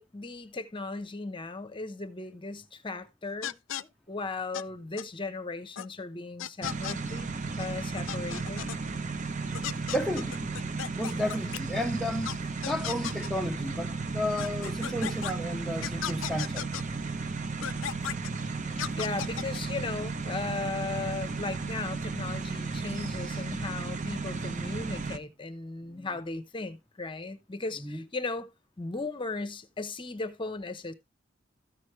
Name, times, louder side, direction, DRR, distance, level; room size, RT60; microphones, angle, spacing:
voice 1, 0.0-7.3 7.6-8.7 18.9-28.5 28.8-30.9, left 3 dB, 25° left, 0.9 m, -37 dB
sound 1, 3.4-3.8 4.5-4.6 5.0-5.1 5.8-5.9 6.4-7.0 7.6-7.7 8.0-8.8 9.5-11.6 12.2-12.3 12.6-13.3 14.4-15.3 15.8-16.8 17.6-18.3 18.8-19.6, left 10 dB, 75° left, 0.4 m, -35 dB
sound 2, 6.6-25.2, right 4 dB, 40° right, 0.7 m, -34 dB
voice 2, 9.9-10.5 10.9-16.7 25.0-25.1 25.9-26.1 27.8-28.0, equal, ahead, 0.6 m, -33 dB
13.5 x 6.2 x 3.1 m
head